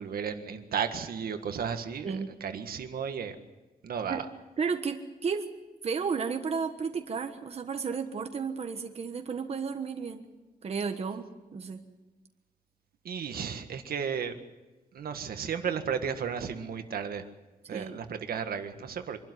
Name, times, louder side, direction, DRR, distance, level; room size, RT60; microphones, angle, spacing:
voice 1, 0.0-3.3 3.8-4.2 13.0-14.4 14.9-17.3 17.7-19.2, right 7 dB, 85° right, 7 dB, 1.7 m, -34 dB
voice 2, 4.6-5.5 5.8-10.2 10.6-11.8 17.7-18.0, right 5 dB, 45° right, 5 dB, 1.3 m, -33 dB
25.0 x 12.5 x 9.7 m, 1.2 s
wide cardioid pair, 175°, 15 cm